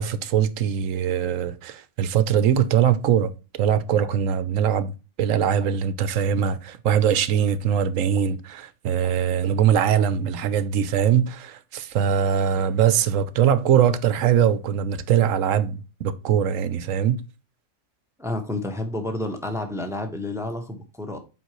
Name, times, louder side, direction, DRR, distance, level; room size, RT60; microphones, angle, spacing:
voice 1, 0.0-17.2, right 9 dB, 70° right, 1.0 m, -22 dB
sound 1, 4.0-4.1 4.7-4.8 5.6-5.7 6.4-6.5 7.3-7.4 8.1-8.2 9.0-9.1 10.0-10.1 11.0-11.1, right 2 dB, 25° right, 1.6 m, -42 dB
voice 2, 18.2-21.2, left 2 dB, ahead, 0.9 m, -30 dB
8.0 x 5.1 x 3.0 m
omnidirectional pair, 1.5 m